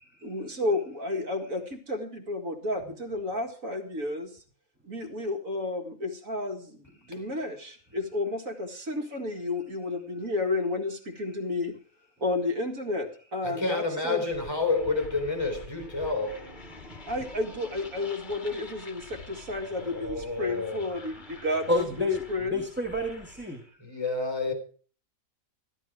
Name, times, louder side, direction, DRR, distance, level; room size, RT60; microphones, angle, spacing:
voice 1, 0.2-4.4 4.8-11.7 12.2-14.2 17.1-22.6, left 2 dB, 70° right, 2.5 m, -32 dB
voice 2, 13.4-16.5 19.8-20.8 23.8-24.5, left 3 dB, 15° left, 3.9 m, -29 dB
sound 1, 14.3-23.7, left 3 dB, 35° left, 1.7 m, -47 dB
voice 3, 21.7-23.6, left 2 dB, 10° right, 1.6 m, -29 dB
13.5 x 12.5 x 4.9 m
omnidirectional pair, 1.5 m